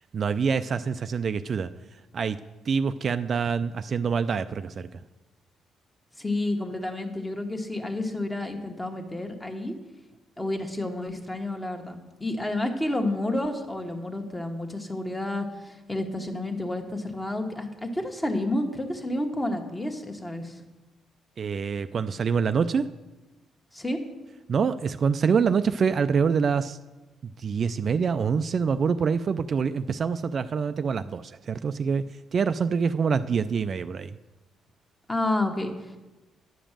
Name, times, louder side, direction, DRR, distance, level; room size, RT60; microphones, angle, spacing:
voice 1, 0.1-1.7 2.1-2.4 2.7-5.0 21.4-22.8 24.5-26.8 27.2-32.0 32.3-34.1, right 6 dB, 50° right, 11 dB, 0.3 m, -25 dB
voice 2, 6.2-9.7 10.4-20.6 23.7-24.0 35.1-36.0, left 1 dB, 15° left, 4 dB, 1.3 m, -30 dB
10.0 x 5.1 x 7.4 m, 1.1 s
cardioid pair, 90°, 0 cm